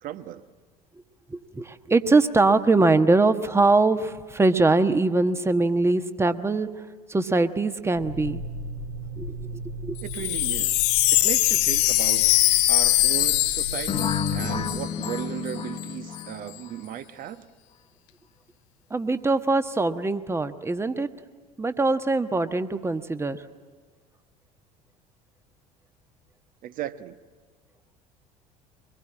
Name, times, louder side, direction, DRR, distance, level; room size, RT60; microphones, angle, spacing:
voice 1, 0.0-0.4 10.0-12.3 12.7-17.5 26.6-27.2, right 11 dB, 45° right, 1.2 m, -36 dB
voice 2, 1.3-6.7 7.1-8.4 9.2-9.4 9.8-10.0 18.9-21.1 21.6-23.4, right 3 dB, 15° right, 1.3 m, -22 dB
sound 1, 7.9-14.7, left 1 dB, 85° left, 2.6 m, -37 dB
Wind chime, 10.0-15.2 15.5-15.6 15.8-16.2, left 17 dB, 55° left, 0.8 m, -22 dB
sound 2, 13.9-16.7, left 7 dB, 25° left, 1.4 m, -30 dB
24.5 x 20.5 x 9.9 m
figure-of-eight pair, 65°, 20 cm